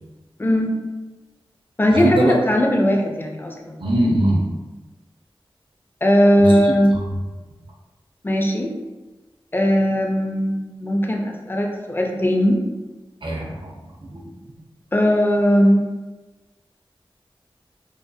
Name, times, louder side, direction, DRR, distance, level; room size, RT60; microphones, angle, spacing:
voice 1, 0.4-0.8 1.8-3.8 6.0-6.9 8.2-8.7 9.5-12.6 14.9-15.8, equal, 20° left, 2 dB, 0.4 m, -18 dB
voice 2, 1.9-2.3 3.8-4.5 6.4-7.0 13.2-13.7 14.0-14.2, right 1 dB, 60° right, -2 dB, 0.5 m, -22 dB
2.6 x 2.3 x 2.2 m, 1.2 s
wide cardioid pair, 45°, 9 cm